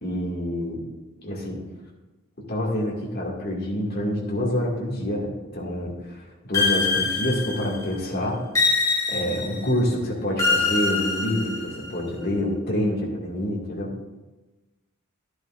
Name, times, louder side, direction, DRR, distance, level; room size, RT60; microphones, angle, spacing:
voice 1, 0.0-0.8 1.2-1.6 2.5-8.4 9.1-13.9, left 1 dB, 45° left, -2 dB, 2.0 m, -27 dB
sound 1, 6.5-7.9 8.5-9.7 10.4-11.9, left 4 dB, 15° left, 2.2 m, -24 dB
11.0 x 11.0 x 2.5 m, 1.1 s
head